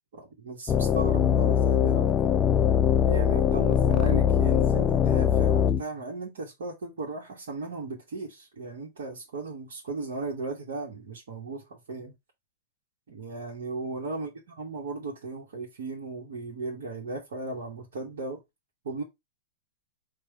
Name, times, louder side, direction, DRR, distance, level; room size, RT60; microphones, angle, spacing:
voice 1, 0.1-2.3 3.1-11.6 11.9-12.1 13.1-14.3 14.6-18.4 18.8-19.0, right 3 dB, 75° right, 1.3 m, -36 dB
sound 1, 0.7-5.8, left 8 dB, 25° left, 0.4 m, -22 dB
4.8 x 2.4 x 4.5 m
hypercardioid pair, 110°, 0 cm